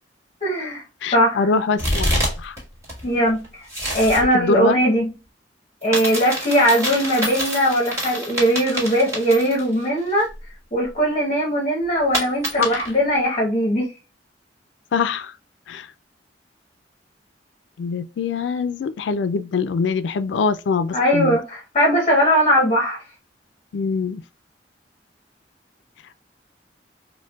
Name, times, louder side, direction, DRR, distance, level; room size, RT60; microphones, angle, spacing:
voice 1, 0.4-0.8 1.1-1.5 3.0-3.4 3.9-5.1 5.8-10.3 10.7-13.9 20.9-23.0, equal, 35° left, 0.9 m, -19 dB
voice 2, 1.0-2.6 4.3-4.8 12.6-12.8 14.9-15.3 15.7-15.9 17.8-21.4 23.7-24.2, left 5 dB, 85° left, 0.3 m, -23 dB
sound 1, 1.8-2.6 2.8-4.3 5.8-9.8 10.2-10.3 12.1-13.0, equal, 15° right, 1.6 m, -26 dB
4.4 x 2.1 x 2.3 m
head